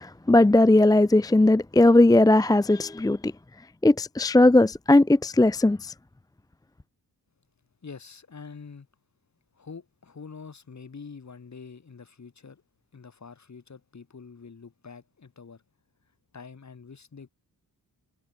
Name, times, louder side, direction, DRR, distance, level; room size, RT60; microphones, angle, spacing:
voice 1, 0.0-3.3 3.8-5.9, left 2 dB, 10° left, 0.6 m, -18 dB
voice 2, 7.8-8.9 9.5-12.6 12.9-15.6 16.3-17.3, left 5 dB, 45° left, 6.1 m, -45 dB
cardioid pair, 90°, 38 cm